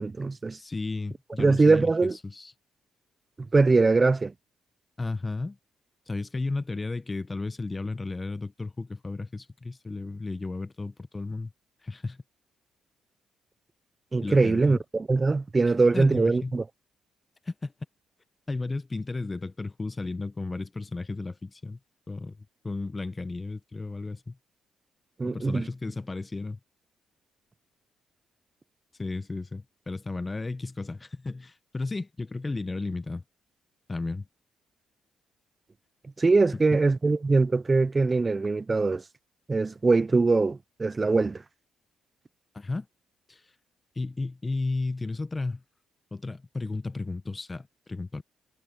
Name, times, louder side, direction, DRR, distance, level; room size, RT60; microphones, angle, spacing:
voice 1, 0.0-0.6 1.4-2.2 3.5-4.3 14.1-16.6 25.2-25.7 36.2-39.0 39.5-41.4, right 3 dB, 25° right, 0.4 m, -22 dB
voice 2, 0.6-1.9 2.2-2.5 5.0-5.6 6.1-11.5 11.8-12.2 14.2-14.8 15.9-16.5 17.4-17.7 18.5-21.8 22.1-22.4 22.6-24.4 25.2-26.6 29.0-33.2 33.9-34.3 42.5-42.9 43.3-43.4 44.0-45.6 46.1-48.2, left 3 dB, 20° left, 0.8 m, -33 dB
cardioid pair, 90°, 0 cm